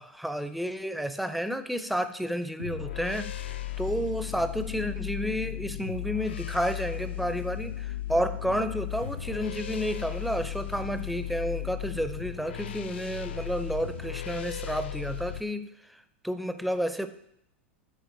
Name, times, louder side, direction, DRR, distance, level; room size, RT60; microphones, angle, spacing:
voice 1, 0.0-17.1, equal, ahead, 10 dB, 0.4 m, -31 dB
sound 1, 2.6-15.4, left 13 dB, 60° left, 0.3 m, -36 dB
sound 2, 8.7-9.6 10.0-10.1, left 3 dB, 85° left, 2.4 m, -47 dB
8.3 x 4.4 x 3.8 m, 0.76 s
figure-of-eight pair, 90°, 7 cm